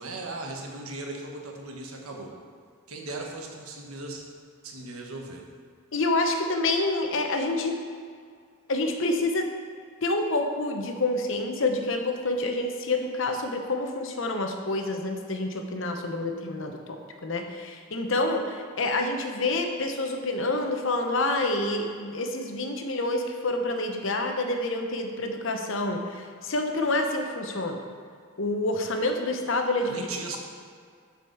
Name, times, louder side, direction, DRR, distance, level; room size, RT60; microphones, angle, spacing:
voice 1, 0.0-2.3 2.9-4.2 4.6-5.4 29.9-30.4, right 2 dB, 85° right, 1 dB, 1.3 m, -37 dB
voice 2, 5.9-7.8 8.7-9.5 10.0-27.8 28.4-30.1, left 2 dB, 60° left, 4 dB, 0.9 m, -28 dB
7.8 x 5.1 x 6.5 m, 2.1 s
head